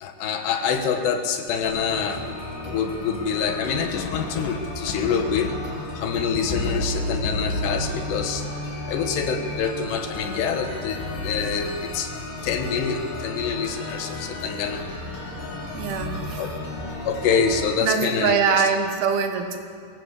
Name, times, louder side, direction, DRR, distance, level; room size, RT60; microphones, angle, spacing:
voice 1, 0.0-2.2 2.6-8.5 8.9-12.1 12.4-14.8 15.9-16.1 16.4-16.5 17.1-18.6, left 5 dB, 85° left, 6 dB, 3.6 m, -26 dB
sound 1, 1.6-17.6, left 2 dB, 70° left, 5.7 m, -35 dB
voice 2, 15.7-16.5 17.8-19.6, right 6 dB, 75° right, 6 dB, 3.2 m, -23 dB
22.5 x 16.5 x 8.3 m, 2.2 s
omnidirectional pair, 4.7 m